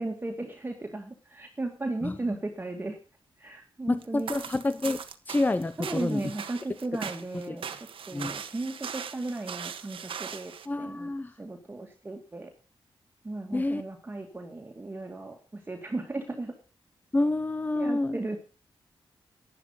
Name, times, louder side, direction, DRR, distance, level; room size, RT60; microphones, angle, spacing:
voice 1, 0.0-3.0 3.4-4.3 5.8-11.1 11.4-12.5 13.2-16.5 17.7-18.4, right 2 dB, 20° right, 2 dB, 2.3 m, -36 dB
voice 2, 3.9-5.0 5.3-6.2 7.5-7.6 8.1-8.4 10.7-11.3 13.5-13.8 17.1-18.2, left 2 dB, 20° left, 13 dB, 0.8 m, -28 dB
sound 1, 4.0-10.7, right 7 dB, 80° right, 1.4 m, -40 dB
11.5 x 11.0 x 5.6 m, 0.34 s
wide cardioid pair, 110°, 9 cm